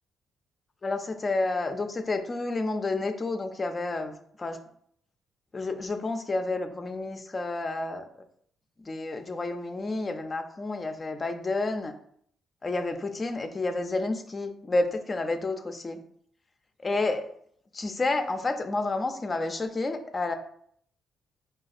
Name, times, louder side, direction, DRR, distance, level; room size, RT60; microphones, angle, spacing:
voice 1, 0.8-4.6 5.5-8.1 8.9-11.9 12.6-16.0 16.8-17.3 17.7-20.3, left 2 dB, 30° left, 7 dB, 0.4 m, -30 dB
4.0 x 2.3 x 2.4 m, 0.65 s
cardioid pair, 80°, 0 cm